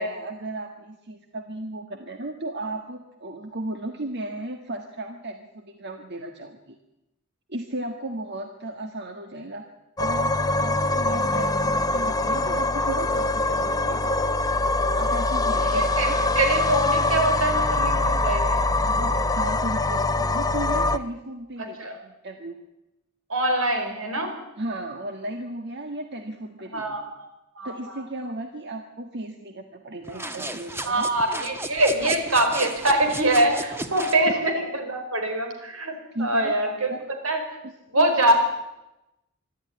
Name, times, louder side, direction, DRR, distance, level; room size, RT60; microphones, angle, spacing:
voice 1, 0.0-6.8 7.5-9.6 10.0-14.1 14.9-16.2 18.8-21.8 22.0-22.6 24.6-26.8 27.6-31.1 34.3-34.4 36.1-37.2 37.6-38.1, right 1 dB, 55° right, 5 dB, 1.6 m, -35 dB
sound 1, 10.0-21.0, left 2 dB, 20° left, 0.8 m, -23 dB
voice 2, 15.6-18.6 19.0-19.1 21.8-22.0 23.3-24.3 26.7-27.3 27.6-28.0 30.8-35.9 36.2-36.9 37.2-37.4 37.9-38.3, right 1 dB, 80° right, 5 dB, 4.8 m, -24 dB
sound 2, 30.0-34.2, right 1 dB, 10° right, 1.4 m, -34 dB
24.5 x 12.5 x 9.7 m, 0.94 s
head